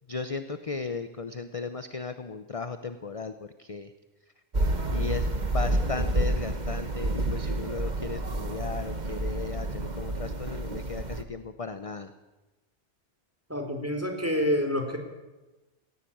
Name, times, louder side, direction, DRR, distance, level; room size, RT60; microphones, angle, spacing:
voice 1, 0.1-3.9 4.9-12.1, left 4 dB, 30° left, 10 dB, 0.8 m, -36 dB
sound 1, 4.5-11.2, right 1 dB, 35° right, 1.5 m, -29 dB
voice 2, 13.5-15.0, equal, 10° right, 3 dB, 3.8 m, -27 dB
18.5 x 18.5 x 8.7 m, 1.1 s
omnidirectional pair, 1.4 m